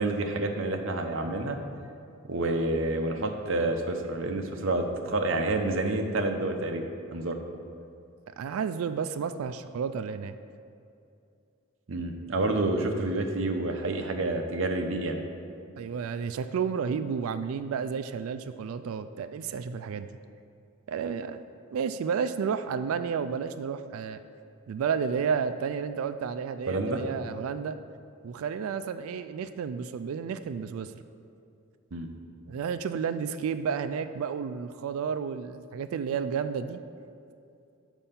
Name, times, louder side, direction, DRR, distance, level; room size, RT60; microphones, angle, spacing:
voice 1, 0.0-1.6 2.3-6.8 7.1-7.4 11.9-15.2 26.7-27.0 31.9-32.1, right 2 dB, 65° right, 5 dB, 0.7 m, -28 dB
voice 2, 8.4-10.4 15.8-20.1 20.9-21.4 21.7-24.2 24.7-27.8 28.2-30.9 32.5-36.8, right 6 dB, 80° right, 11 dB, 0.3 m, -31 dB
7.0 x 5.4 x 5.7 m, 2.5 s
head